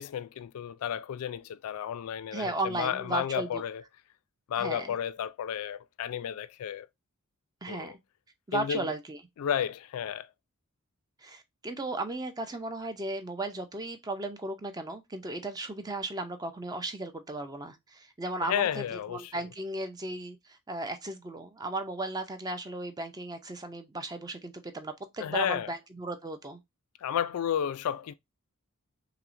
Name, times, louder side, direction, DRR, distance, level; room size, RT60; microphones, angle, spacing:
voice 1, 0.0-3.8 4.5-6.9 7.7-7.9 8.5-8.9 9.4-10.3 18.4-19.3 25.2-25.7 27.0-28.1, left 9 dB, 70° left, 0.3 m, -32 dB
voice 2, 2.3-3.6 4.6-5.0 7.6-8.0 8.5-9.2 11.2-26.6, right 2 dB, 15° right, 0.4 m, -36 dB
5.7 x 2.1 x 2.5 m
head